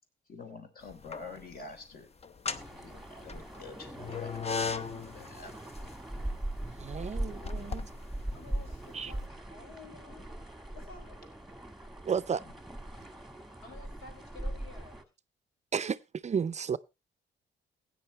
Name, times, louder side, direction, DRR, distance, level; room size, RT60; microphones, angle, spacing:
voice 1, 0.3-2.1 2.8-5.5, left 4 dB, 50° left, 3.4 m, -47 dB
sound 1, 0.9-1.6 2.2-9.1, left 5 dB, 30° left, 0.8 m, -38 dB
sound 2, 2.5-15.0, right 1 dB, ahead, 1.7 m, -41 dB
voice 2, 6.8-7.9 8.9-9.1 12.1-12.4 15.7-16.0 16.2-16.8, right 6 dB, 35° right, 0.5 m, -32 dB
voice 3, 8.3-11.5 13.6-15.1, left 4 dB, 85° left, 5.6 m, -52 dB
16.0 x 9.5 x 3.1 m
cardioid pair, 90°, 20 cm